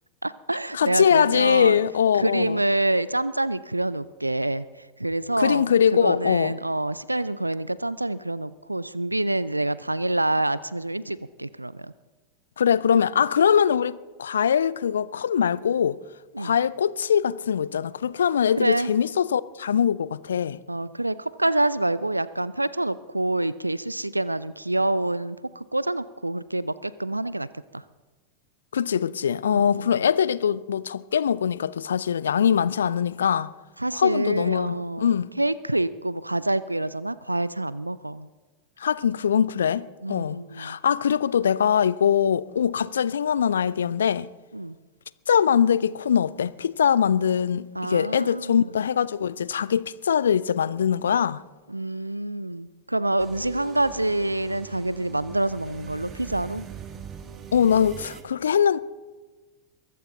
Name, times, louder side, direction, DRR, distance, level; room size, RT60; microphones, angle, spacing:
voice 1, 0.2-1.8 2.1-5.7 5.9-11.9 16.3-16.6 18.6-18.9 20.7-27.8 29.5-30.1 33.8-38.3 40.0-40.8 44.5-44.8 47.7-48.7 51.7-56.7, right 2 dB, 85° right, 0.4 m, -27 dB
voice 2, 0.7-2.6 5.4-6.5 12.6-16.0 16.4-20.6 28.7-33.5 34.0-35.3 38.8-44.3 45.3-51.4 57.5-58.8, left 8 dB, 65° left, 0.5 m, -22 dB
sound 1, 53.2-58.2, right 8 dB, 25° right, 1.8 m, -42 dB
22.5 x 14.5 x 3.9 m
figure-of-eight pair, 90°, 0 cm